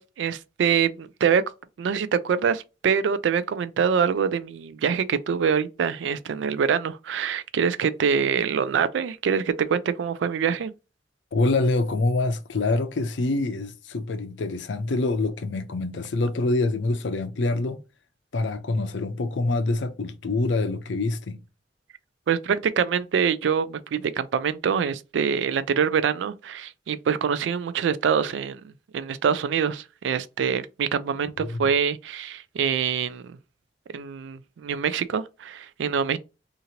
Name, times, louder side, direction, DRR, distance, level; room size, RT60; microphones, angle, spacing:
voice 1, 0.0-1.4 1.8-10.7 22.3-28.6 28.9-33.4 33.9-36.2, right 7 dB, 90° right, 0.3 m, -25 dB
voice 2, 11.3-17.8 18.3-21.4 31.4-31.6, left 2 dB, 90° left, 0.5 m, -25 dB
2.8 x 2.5 x 2.8 m
head